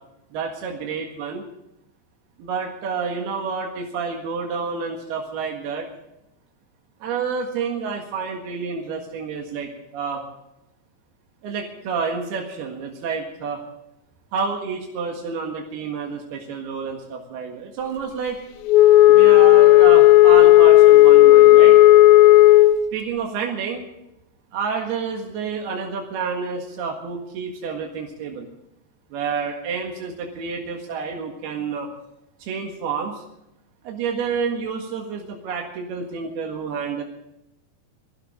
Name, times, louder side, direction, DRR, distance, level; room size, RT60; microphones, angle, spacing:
voice 1, 0.3-1.5 2.4-5.9 7.0-10.2 11.4-13.6 14.3-18.4 19.1-21.8 22.9-23.8 24.5-28.5 29.1-31.9 32.4-33.2 33.8-37.0, right 5 dB, 85° right, 1 dB, 3.8 m, -29 dB
Wind instrument woodwind instrument, 18.7-22.8, left 16 dB, 80° left, 2.4 m, -10 dB
23.0 x 15.5 x 3.8 m, 0.89 s
omnidirectional pair, 4.5 m